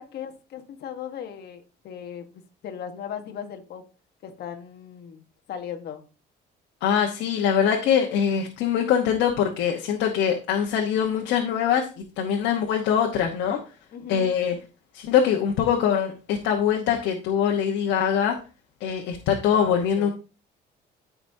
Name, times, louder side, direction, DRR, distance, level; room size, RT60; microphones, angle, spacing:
voice 1, 0.0-3.8 4.2-6.0 13.9-14.4 19.5-20.1, left 8 dB, 60° left, 1.3 m, -38 dB
voice 2, 6.8-11.9 12.2-13.6 14.1-14.6 14.9-18.4 18.8-20.1, left 8 dB, 85° left, 1.1 m, -23 dB
13.5 x 5.1 x 2.7 m
cardioid pair, 125°, 19 cm